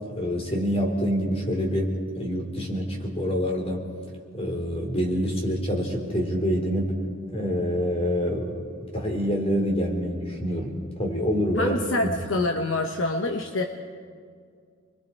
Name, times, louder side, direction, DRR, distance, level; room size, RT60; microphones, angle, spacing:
voice 1, 0.1-3.9 4.3-7.0 7.3-8.6 8.9-11.8 12.0-12.2, equal, 30° left, 1 dB, 3.5 m, -26 dB
voice 2, 11.6-13.6, left 2 dB, 65° left, 4 dB, 1.1 m, -26 dB
29.0 x 21.5 x 4.5 m, 2.1 s
head